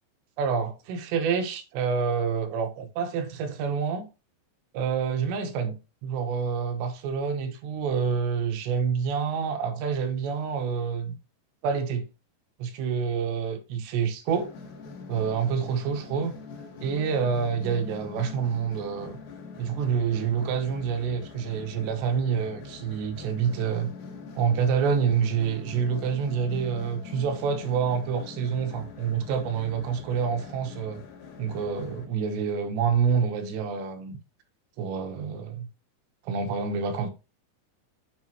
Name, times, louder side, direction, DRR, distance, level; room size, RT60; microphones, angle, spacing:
voice 1, 0.4-4.1 4.7-11.2 11.6-12.1 12.6-14.5 15.1-16.4 16.8-19.2 19.6-23.9 24.4-31.0 31.4-34.2 34.8-35.7 36.3-37.1, right 6 dB, 85° right, 3.2 m, -27 dB
sound 1, 14.3-32.0, left 4 dB, 70° left, 3.1 m, -43 dB
7.6 x 6.8 x 3.0 m
omnidirectional pair, 4.9 m